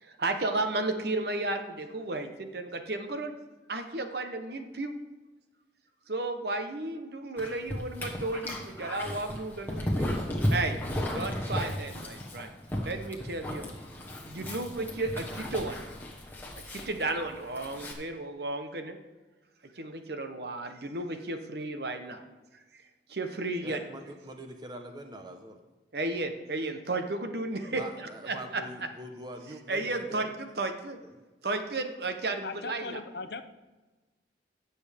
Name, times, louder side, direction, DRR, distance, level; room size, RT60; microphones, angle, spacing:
voice 1, 0.2-3.4 3.7-4.9 6.1-10.1 10.5-10.8 11.1-12.5 12.8-13.6 14.3-15.8 16.7-19.0 19.8-22.2 23.1-23.8 25.9-28.6 29.7-31.0 31.4-33.0, right 2 dB, 65° right, 6 dB, 1.0 m, -33 dB
Dog, 7.4-17.9, left 1 dB, 10° left, 1.3 m, -35 dB
voice 2, 23.6-25.6 27.7-30.4 31.0-31.2, right 1 dB, 25° right, 4 dB, 1.0 m, -43 dB
voice 3, 32.4-33.4, left 4 dB, 65° left, 10 dB, 0.7 m, -38 dB
17.0 x 7.0 x 3.6 m, 1.2 s
head